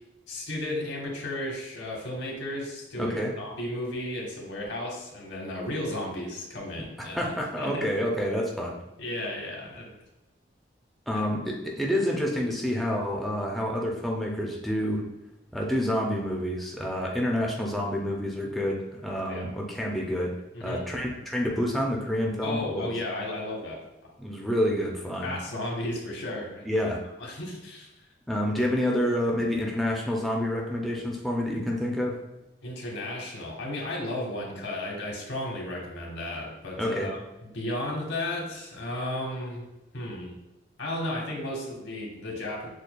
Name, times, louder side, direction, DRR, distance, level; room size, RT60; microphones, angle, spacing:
voice 1, 0.3-7.3 7.6-7.9 9.0-9.9 11.1-11.2 19.3-19.5 20.5-20.8 22.4-24.1 25.2-26.8 27.2-27.9 32.6-37.2 37.5-39.6 39.9-40.3 40.8-42.7, left 1 dB, 75° left, -1 dB, 1.1 m, -34 dB
voice 2, 3.0-3.3 7.0-8.8 11.1-15.0 15.5-20.4 20.6-22.9 24.2-25.3 26.7-27.0 28.3-32.2 36.8-37.1, equal, ahead, -2 dB, 0.4 m, -28 dB
6.5 x 2.2 x 2.2 m, 0.99 s
head